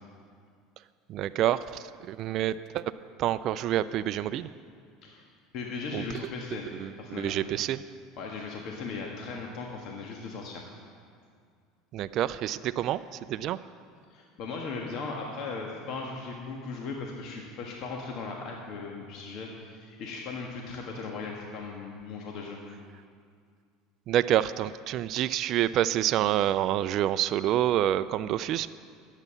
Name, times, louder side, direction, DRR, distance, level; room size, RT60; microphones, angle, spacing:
voice 1, 1.1-2.8 3.2-4.5 5.9-6.0 6.7-7.8 11.9-13.0 13.3-13.6 24.1-28.7, right 12 dB, 55° right, 13 dB, 0.3 m, -27 dB
voice 2, 5.5-6.7 7.0-7.4 8.2-10.6 14.1-22.6, left 4 dB, 60° left, 0 dB, 1.4 m, -38 dB
11.0 x 8.2 x 6.9 m, 2.2 s
hypercardioid pair, 85°, 0 cm